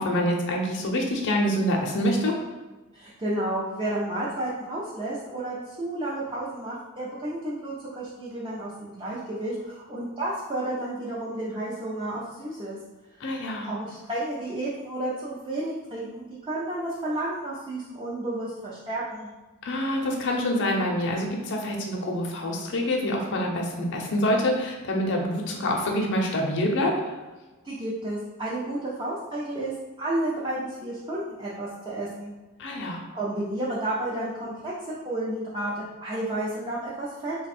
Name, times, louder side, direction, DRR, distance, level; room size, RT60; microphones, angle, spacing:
voice 1, 0.0-2.3 13.2-13.7 19.6-27.1 32.6-33.0, left 1 dB, 55° left, 0 dB, 0.6 m, -26 dB
voice 2, 2.9-12.8 13.2-13.3 13.6-19.3 27.6-29.7 30.0-32.3 33.1-34.7 35.0-37.4, right 1 dB, 25° right, -7 dB, 0.5 m, -31 dB
3.4 x 2.2 x 4.2 m, 1.2 s
head